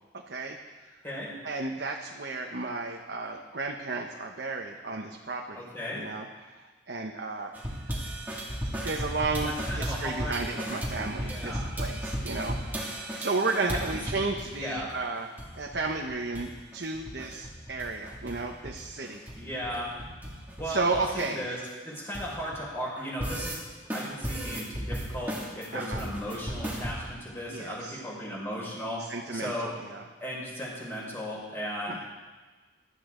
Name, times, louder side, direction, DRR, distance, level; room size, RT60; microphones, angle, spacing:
voice 1, 0.3-0.6 1.4-5.7 5.9-7.5 7.9-8.0 8.6-15.3 15.6-19.2 20.6-21.6 25.7-26.0 27.5-28.0 29.0-29.5 29.9-30.0 31.9-32.0, right 3 dB, 60° right, 1 dB, 1.0 m, -33 dB
voice 2, 5.6-6.1 9.4-10.3 11.3-11.6 13.7-14.0 14.6-14.9 19.4-19.9 20.6-23.6 23.9-29.0 29.3-29.7 30.2-31.9, equal, 10° left, -5 dB, 5.4 m, -36 dB
sound 1, 7.5-14.5 14.8-14.9 15.1-15.8 16.1-16.5 16.7-18.4 18.6-22.6 23.0-23.6 23.9-26.9, equal, 10° right, 2.4 m, -35 dB
23.0 x 13.0 x 3.9 m, 1.3 s
head